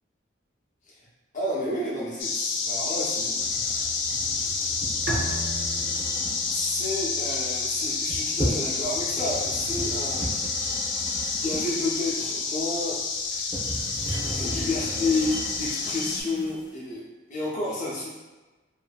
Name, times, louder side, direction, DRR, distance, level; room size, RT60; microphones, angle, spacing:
voice 1, 1.3-3.6 4.4-4.7 6.5-10.3 11.3-13.0 14.3-18.1, left 2 dB, 40° left, -5 dB, 0.7 m, -31 dB
sound 1, 2.2-16.2, left 4 dB, 70° left, 0.4 m, -29 dB
sound 2, 3.4-16.7, equal, 25° right, 0.7 m, -36 dB
Bowed string instrument, 5.1-8.5, right 1 dB, 55° right, 0.4 m, -36 dB
2.7 x 2.5 x 2.2 m, 1.2 s
head